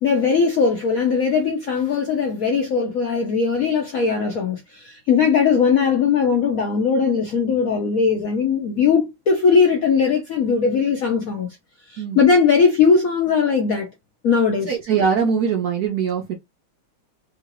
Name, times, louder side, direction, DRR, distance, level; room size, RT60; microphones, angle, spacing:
voice 1, 0.0-11.5 11.9-13.9 14.2-14.8, left 5 dB, 70° left, 0.8 m, -19 dB
voice 2, 14.7-16.3, right 6 dB, 65° right, 0.9 m, -21 dB
3.8 x 2.4 x 2.9 m
omnidirectional pair, 2.3 m